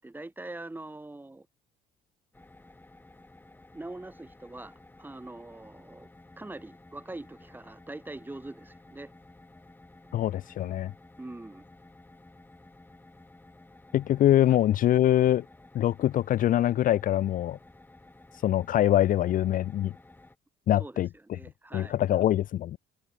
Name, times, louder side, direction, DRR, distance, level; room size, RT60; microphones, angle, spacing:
voice 1, 0.0-1.5 3.7-4.7 5.0-6.1 6.4-9.1 11.2-11.6 20.8-22.0, right 2 dB, 10° right, 6.6 m, -43 dB
sound 1, 2.3-20.4, left 2 dB, 10° left, 6.5 m, -54 dB
voice 2, 10.1-10.9 13.9-15.4 15.7-17.6 18.4-19.9 20.7-21.4 21.7-22.8, left 12 dB, 55° left, 0.6 m, -24 dB
cardioid pair, 110°, 17 cm